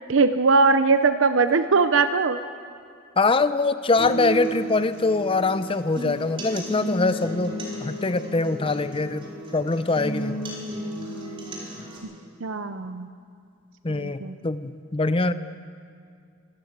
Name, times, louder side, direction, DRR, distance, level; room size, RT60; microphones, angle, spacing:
voice 1, 0.1-2.4 12.4-13.1 13.9-14.3, right 4 dB, 75° right, 10 dB, 0.7 m, -20 dB
voice 2, 3.2-10.4 13.8-15.3, left 3 dB, 25° left, 12 dB, 0.6 m, -23 dB
sound 1, 4.0-12.0, right 1 dB, 25° right, 4.3 m, -33 dB
24.5 x 14.0 x 8.1 m, 2.2 s
head